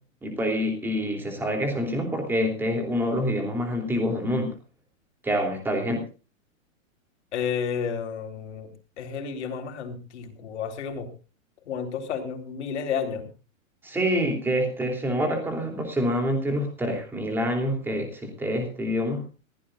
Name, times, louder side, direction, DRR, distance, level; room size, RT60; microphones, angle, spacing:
voice 1, 0.2-4.5 5.2-6.0 13.8-19.2, equal, 5° right, 3 dB, 3.1 m, -26 dB
voice 2, 7.3-8.7 9.0-11.1 11.7-13.3, left 7 dB, 55° left, 5 dB, 4.1 m, -31 dB
22.0 x 15.5 x 2.5 m, 0.34 s
hypercardioid pair, 175°, 41 cm